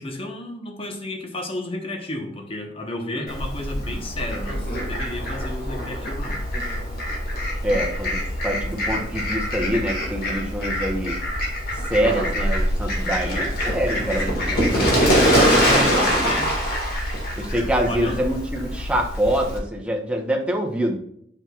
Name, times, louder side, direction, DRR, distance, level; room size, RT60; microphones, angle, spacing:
voice 1, 0.0-6.4 13.2-13.4 14.8-16.5 17.9-18.2, left 2 dB, 30° left, 3 dB, 1.1 m, -32 dB
Fowl, 3.3-19.6, equal, 55° left, 1.9 m, -24 dB
voice 2, 7.6-11.2 11.9-16.4 17.4-21.0, equal, 5° right, 0 dB, 1.0 m, -25 dB
8.8 x 5.9 x 2.4 m, 0.69 s
head